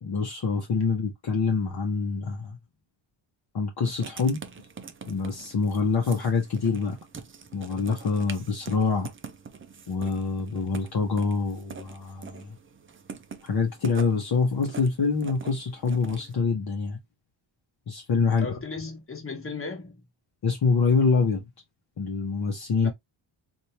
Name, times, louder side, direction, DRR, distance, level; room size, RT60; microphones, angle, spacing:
voice 1, 0.0-2.6 3.5-4.4 5.1-7.0 7.5-9.1 9.9-12.6 13.4-17.0 17.9-18.5 20.4-21.4 22.0-22.9, left 4 dB, 50° left, 1.0 m, -25 dB
Writing, 3.8-16.3, right 6 dB, 25° right, 0.5 m, -44 dB
voice 2, 18.3-20.0 22.8-22.9, left 4 dB, 25° left, 1.3 m, -36 dB
3.2 x 2.7 x 2.8 m
cardioid pair, 100°, 50 cm